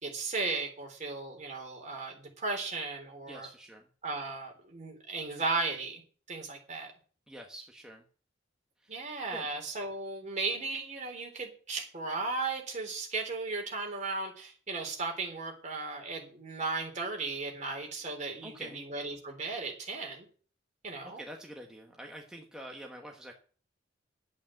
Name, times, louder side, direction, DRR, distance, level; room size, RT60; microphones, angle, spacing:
voice 1, 0.0-3.5 4.0-6.0 6.3-6.9 8.9-20.3 20.8-21.2, right 3 dB, 40° right, 2 dB, 3.7 m, -36 dB
voice 2, 3.3-3.9 7.3-8.0 8.8-9.5 18.4-18.8 21.0-23.3, equal, 5° right, 1 dB, 1.3 m, -47 dB
11.5 x 8.4 x 7.8 m, 0.42 s
head